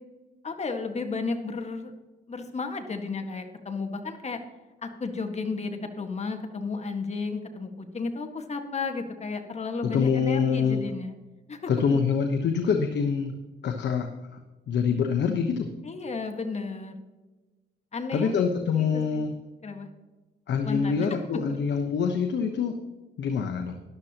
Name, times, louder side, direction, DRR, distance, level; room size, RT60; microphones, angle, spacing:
voice 1, 0.4-1.9 2.3-4.4 4.8-11.1 11.5-12.0 15.8-16.9 17.9-18.4 18.7-18.9 19.1-19.3 19.6-19.9 20.6-21.0 21.5-21.6, left 4 dB, 35° left, 5 dB, 1.6 m, -33 dB
voice 2, 9.8-10.8 11.7-13.3 13.6-14.1 14.7-15.7 18.1-19.3 20.5-22.8 23.2-23.8, left 6 dB, 60° left, 5 dB, 1.1 m, -25 dB
13.5 x 11.5 x 2.9 m, 1.2 s
cardioid pair, 90°, 20 cm